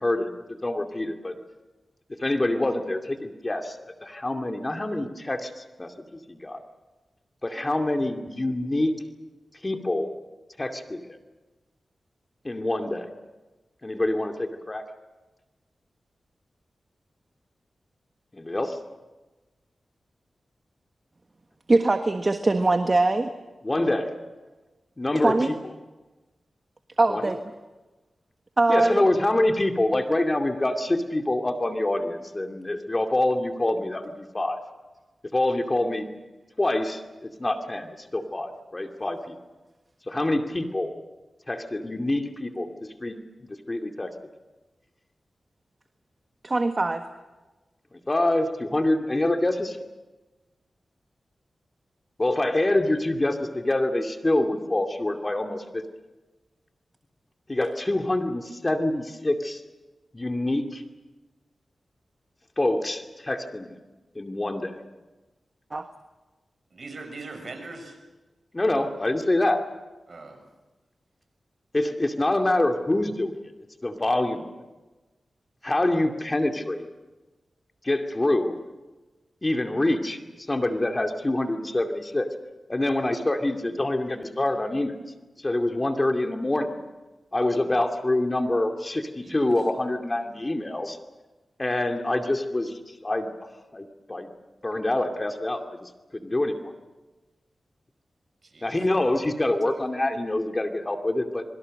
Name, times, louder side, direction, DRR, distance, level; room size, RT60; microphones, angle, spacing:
voice 1, 0.0-1.3 2.2-6.6 7.4-9.0 9.6-10.1 10.6-11.2 12.4-13.1 13.8-14.8 18.3-18.8 23.6-24.1 25.0-25.5 27.1-27.3 28.7-34.6 35.3-36.1 36.6-39.3 40.1-40.9 41.5-42.7 43.0-43.2 43.7-44.1 47.9-49.8 52.2-55.8 57.5-59.6 60.1-60.8 62.6-63.7 64.1-64.8 68.5-69.6 71.7-73.3 73.8-74.5 75.6-76.9 77.8-78.6 79.4-80.2 80.5-82.3 82.7-85.0 85.4-86.9 87.3-91.0 91.6-94.3 94.6-96.7 98.6-101.4, left 1 dB, 30° left, 5 dB, 2.5 m, -26 dB
voice 2, 21.7-23.3 25.2-25.5 27.0-27.4 28.6-29.0 46.4-47.0 65.7-65.9, right 2 dB, 40° right, 7 dB, 1.4 m, -22 dB
voice 3, 66.7-68.0 70.1-70.4 89.2-89.5 98.4-98.8, right 3 dB, 60° right, 5 dB, 6.5 m, -41 dB
26.5 x 23.5 x 6.6 m, 1.2 s
cardioid pair, 45°, 0 cm